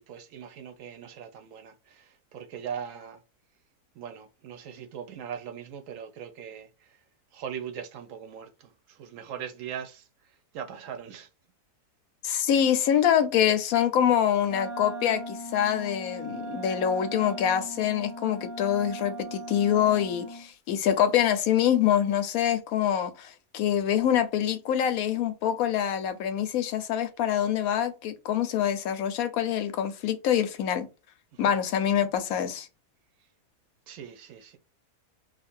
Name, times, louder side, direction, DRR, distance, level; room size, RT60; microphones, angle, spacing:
voice 1, 0.0-3.2 4.0-6.7 7.3-10.0 10.5-11.3 31.3-31.6 33.9-34.6, right 8 dB, 65° right, 0.9 m, -40 dB
voice 2, 12.2-30.9 31.4-32.7, left 9 dB, 70° left, 0.9 m, -25 dB
Wind instrument woodwind instrument, 14.4-20.5, right 1 dB, 5° right, 0.4 m, -39 dB
2.7 x 2.5 x 4.2 m
omnidirectional pair, 1.7 m